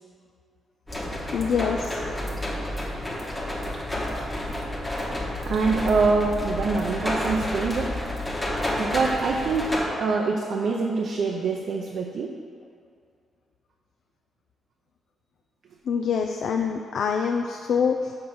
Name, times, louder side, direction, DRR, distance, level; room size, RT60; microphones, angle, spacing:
sound 1, 0.9-9.9, left 1 dB, 10° left, 1.1 m, -30 dB
voice 1, 1.3-2.0 15.9-18.1, left 6 dB, 65° left, 3 dB, 0.4 m, -25 dB
voice 2, 5.5-8.0 8.8-12.3 16.2-16.3, right 4 dB, 60° right, 0 dB, 0.6 m, -25 dB
6.6 x 5.4 x 6.0 m, 2.2 s
wide cardioid pair, 150°, 0 cm